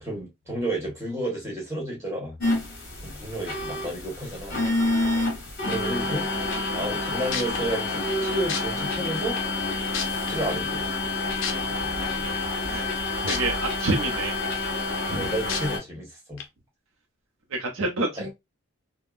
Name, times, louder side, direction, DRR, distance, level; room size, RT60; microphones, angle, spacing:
voice 1, 0.0-2.4 3.0-4.6 5.6-6.3 6.7-9.4 10.3-10.8 15.1-16.4 18.2-18.3, right 1 dB, 10° right, 1.3 m, -31 dB
sound 1, 2.4-15.8, left 2 dB, 45° left, 1.3 m, -28 dB
sound 2, 7.3-7.6 8.5-8.6 9.4-9.5 9.9-10.3 11.4-11.5 13.3-13.4 13.9-14.0 15.5-15.6 16.4-16.5, left 7 dB, 65° left, 0.5 m, -29 dB
voice 2, 13.2-14.4 15.1-15.2 17.5-18.3, right 2 dB, 65° right, 0.6 m, -27 dB
3.6 x 2.1 x 2.4 m
head